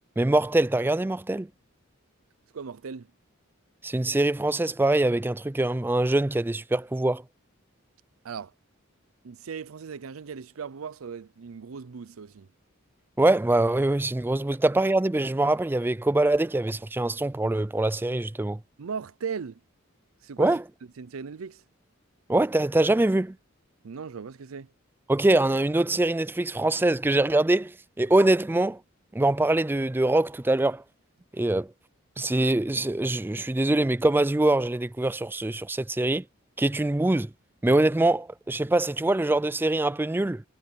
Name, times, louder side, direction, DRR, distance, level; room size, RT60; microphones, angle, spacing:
voice 1, 0.2-1.5 3.8-7.2 13.2-18.6 20.4-20.6 22.3-23.4 25.1-28.8 29.1-30.8 31.3-31.7 32.2-36.2 36.6-37.3 37.6-40.4, right 2 dB, 10° right, 0.4 m, -23 dB
voice 2, 2.5-3.1 8.2-8.5 9.2-12.5 18.8-19.6 20.2-20.6 21.0-21.6 23.8-24.7, right 6 dB, 90° right, 0.5 m, -37 dB
head